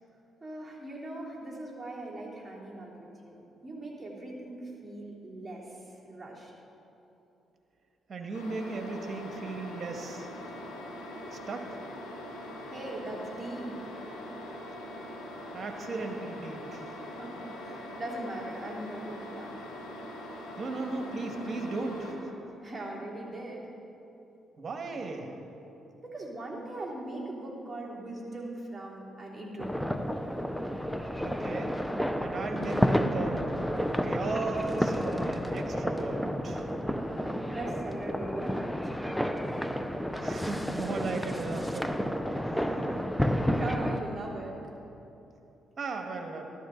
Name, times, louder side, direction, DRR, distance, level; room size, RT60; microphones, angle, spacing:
voice 1, 0.4-6.5 12.6-13.7 17.0-19.6 22.6-23.7 26.0-29.9 36.9-39.0 42.5-44.6, right 1 dB, 15° right, -4 dB, 3.4 m, -40 dB
voice 2, 8.1-10.3 11.3-11.8 15.5-16.9 20.6-22.1 24.6-25.3 31.2-31.7 32.2-33.5 34.0-36.7 40.2-42.0 45.8-46.5, right 3 dB, 45° right, 3 dB, 1.8 m, -36 dB
sound 1, 8.3-22.1, left 1 dB, 90° left, 2.2 m, -42 dB
sound 2, 29.6-44.0, equal, 5° left, 0.7 m, -31 dB
13.5 x 13.0 x 3.9 m, 3.0 s
supercardioid pair, 60°, 0 cm